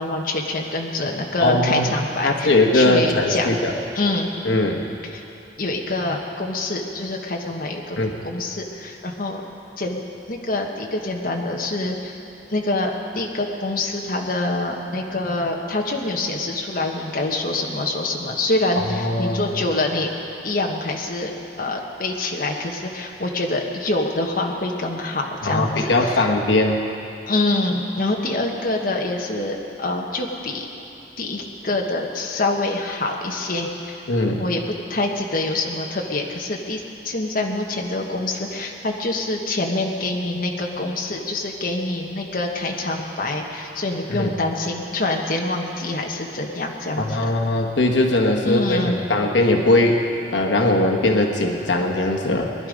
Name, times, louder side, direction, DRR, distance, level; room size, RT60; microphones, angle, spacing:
voice 1, 0.0-3.5 3.9-4.3 5.0-5.2 5.6-8.0 8.2-9.4 9.8-10.0 10.3-12.2 12.5-20.1 20.4-21.3 21.6-26.3 27.3-30.6 31.2-34.0 34.4-34.6 34.9-47.2 48.4-48.9, left 2 dB, 50° left, 1 dB, 1.3 m, -25 dB
voice 2, 1.4-1.9 2.2-3.7 4.4-4.8 8.0-8.1 18.9-19.5 25.4-26.8 34.1-34.5 44.1-44.3 47.0-50.0 50.3-52.5, left 2 dB, 90° left, 1 dB, 1.2 m, -20 dB
20.5 x 11.0 x 5.1 m, 2.8 s
head